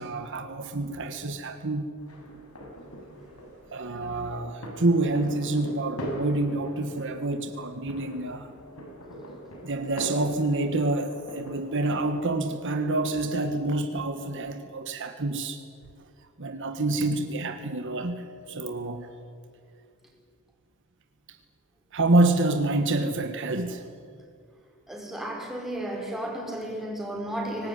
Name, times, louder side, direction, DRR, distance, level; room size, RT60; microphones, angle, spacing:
voice 1, 0.0-1.9 3.7-8.5 9.6-15.6 16.4-19.1 21.9-23.9, right 2 dB, 60° right, 7 dB, 1.5 m, -27 dB
sound 1, 2.0-12.1, equal, 85° left, 6.3 m, -42 dB
voice 2, 24.9-27.7, right 1 dB, ahead, -1 dB, 5.0 m, -33 dB
24.5 x 19.5 x 9.6 m, 2.3 s
head